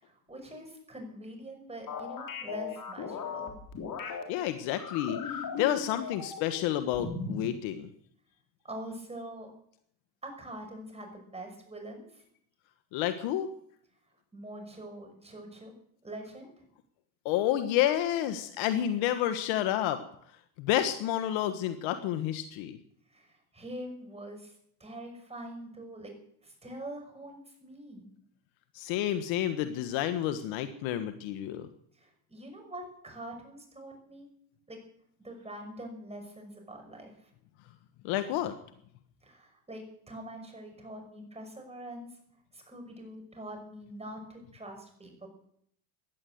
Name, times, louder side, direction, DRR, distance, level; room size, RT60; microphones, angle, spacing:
voice 1, 0.0-3.5 8.6-9.5 10.2-12.2 14.3-15.7 16.0-16.7 23.1-24.5 24.8-28.1 31.9-34.3 34.7-34.8 35.2-37.3 39.2-42.1 42.5-45.3, right 1 dB, 10° right, 3 dB, 5.8 m, -44 dB
sound 1, 1.9-4.2 4.7-6.6 6.9-7.5, left 5 dB, 40° left, 3.6 m, -37 dB
voice 2, 4.3-5.2 5.6-7.9 12.9-13.5 17.2-20.0 20.6-22.8 28.7-31.7 38.0-38.5, left 12 dB, 70° left, 10 dB, 1.3 m, -29 dB
15.5 x 11.0 x 7.8 m, 0.68 s
supercardioid pair, 110°, 49 cm